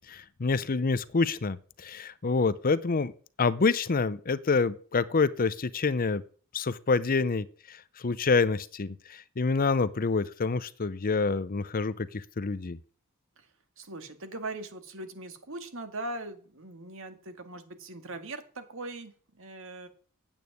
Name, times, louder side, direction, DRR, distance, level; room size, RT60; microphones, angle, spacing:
voice 1, 0.1-3.1 3.4-6.2 6.5-12.8, left 4 dB, 40° left, 16 dB, 0.6 m, -27 dB
voice 2, 13.8-19.9, right 2 dB, 65° right, 8 dB, 2.1 m, -40 dB
9.0 x 8.5 x 9.4 m, 0.43 s
head